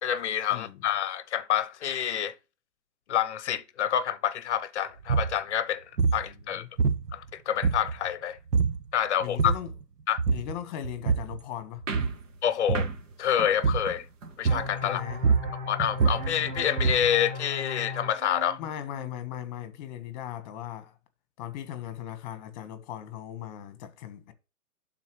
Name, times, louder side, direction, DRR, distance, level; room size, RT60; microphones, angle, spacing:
voice 1, 0.0-2.3 3.1-5.8 6.1-6.6 7.1-8.4 8.9-9.5 10.1-10.2 12.4-12.9 13.2-14.0 14.4-15.0 15.7-18.6, left 10 dB, 45° left, 0.8 m, -27 dB
sound 1, 5.0-5.4 6.0-6.3 6.8-7.3 7.6-8.1 8.5-8.8 9.2-9.7 10.2-10.6 10.8-11.4 11.8-12.2 12.7-13.0 13.6-14.0 14.4-14.8 15.1-17.2, right 5 dB, 80° right, 1.1 m, -25 dB
voice 2, 6.3-6.7 9.2-9.7 10.3-11.8 14.8-15.2 18.6-20.9 21.4-24.3, left 11 dB, 30° left, 1.3 m, -38 dB
sound 2, 11.9-14.7, right 4 dB, 50° right, 1.9 m, -39 dB
sound 3, 14.5-19.9, left 3 dB, 35° right, 4.4 m, -38 dB
11.5 x 4.3 x 3.1 m
hypercardioid pair, 150°, 47 cm